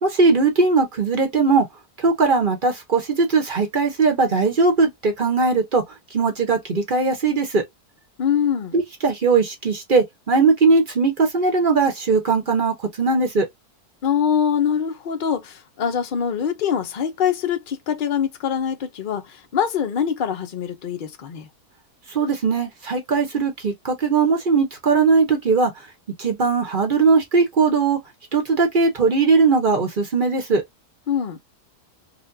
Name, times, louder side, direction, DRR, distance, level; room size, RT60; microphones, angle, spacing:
voice 1, 0.0-1.7 2.0-5.8 6.1-7.6 8.7-13.5 22.1-25.7 26.2-28.0 28.3-30.6, right 4 dB, 40° right, 0.9 m, -19 dB
voice 2, 8.2-8.8 14.0-21.5 31.1-31.4, left 8 dB, 80° left, 0.4 m, -24 dB
4.1 x 2.2 x 2.6 m
omnidirectional pair, 1.7 m